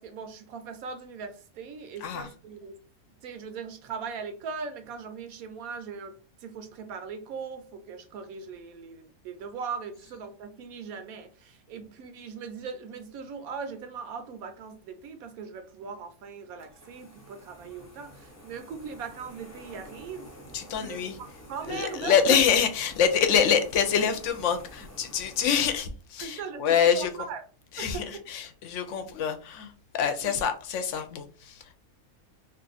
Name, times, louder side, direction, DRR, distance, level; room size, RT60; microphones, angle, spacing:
voice 1, 0.0-2.7 3.2-6.1 6.4-20.3 20.8-21.1 21.5-22.4 26.2-27.4 27.8-28.2 30.2-30.3, right 5 dB, 80° right, 1.1 m, -39 dB
sound 1, 16.6-25.8, equal, 15° left, 0.5 m, -49 dB
voice 2, 20.5-21.2 21.7-27.1 27.7-31.7, left 7 dB, 65° left, 0.8 m, -26 dB
2.7 x 2.4 x 3.9 m
omnidirectional pair, 1.5 m